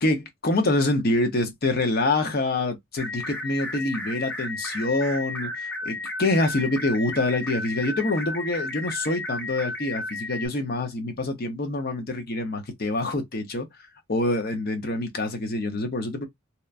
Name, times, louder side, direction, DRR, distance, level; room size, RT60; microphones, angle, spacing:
voice 1, 0.0-13.7 14.1-16.2, left 2 dB, 45° left, 0.7 m, -26 dB
sound 1, 3.0-10.5, left 2 dB, 10° left, 0.6 m, -33 dB
2.9 x 2.2 x 2.4 m
head